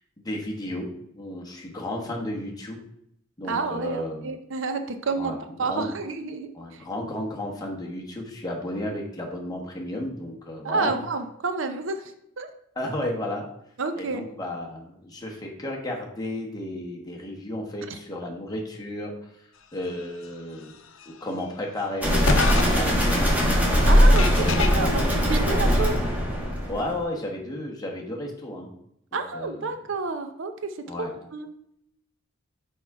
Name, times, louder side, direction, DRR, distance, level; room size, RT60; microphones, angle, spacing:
voice 1, 0.2-0.9 1.1-2.8 3.4-4.3 5.2-5.3 5.6-5.9 6.5-11.0 12.7-13.4 14.0-20.7 21.2-23.3 24.4-24.8 26.7-28.7 29.1-29.7 30.9-31.1, left 1 dB, 20° left, -1 dB, 1.2 m, -33 dB
voice 2, 3.5-5.3 5.6-6.8 10.6-12.5 13.8-14.3 17.9-18.0 23.9-25.9 29.1-30.7 31.0-31.5, right 4 dB, 65° right, 8 dB, 0.6 m, -29 dB
sound 1, 21.0-21.1 22.2-22.6 24.1-24.7, left 3 dB, 70° left, 0.7 m, -23 dB
sound 2, 22.0-26.9, equal, 5° right, 1.4 m, -20 dB
6.0 x 4.9 x 4.7 m, 0.74 s
head